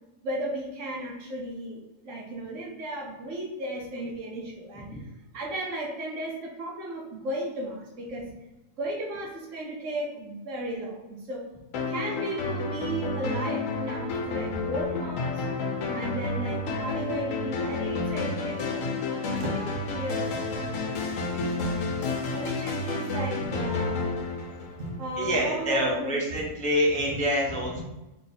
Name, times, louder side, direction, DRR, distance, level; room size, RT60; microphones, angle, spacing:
voice 1, 0.2-5.1 5.3-8.3 8.8-11.5 11.9-15.5 15.9-18.8 19.2-21.8 22.3-24.1 24.8-26.2 27.1-27.2, right 1 dB, 75° right, -3 dB, 1.1 m, -35 dB
sound 1, 11.7-25.3, left 3 dB, 80° left, 1.0 m, -30 dB
voice 2, 25.2-27.8, equal, 10° left, -3 dB, 0.4 m, -26 dB
4.0 x 3.2 x 2.7 m, 1.0 s
omnidirectional pair, 1.3 m